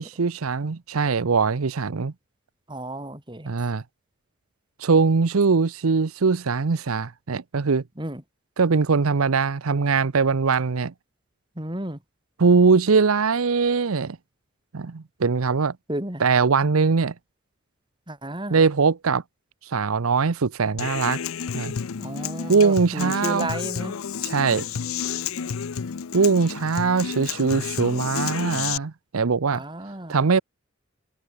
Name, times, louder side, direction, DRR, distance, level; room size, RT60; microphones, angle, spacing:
voice 1, 0.0-2.1 3.5-3.8 4.8-7.8 8.6-10.9 12.4-14.2 14.7-15.7 16.2-17.1 18.5-19.2 19.6-21.2 21.5-21.7 22.5-23.5 24.2-24.7 26.1-29.6 30.1-30.4, right 4 dB, 85° right, 0.7 m, -21 dB
voice 2, 2.7-3.5 8.0-8.2 11.5-12.0 15.9-16.2 18.1-18.6 22.0-24.0 29.5-30.2, right 1 dB, 20° right, 2.9 m, -33 dB
Human voice / Acoustic guitar, 20.8-28.8, left 7 dB, 80° left, 0.5 m, -31 dB
head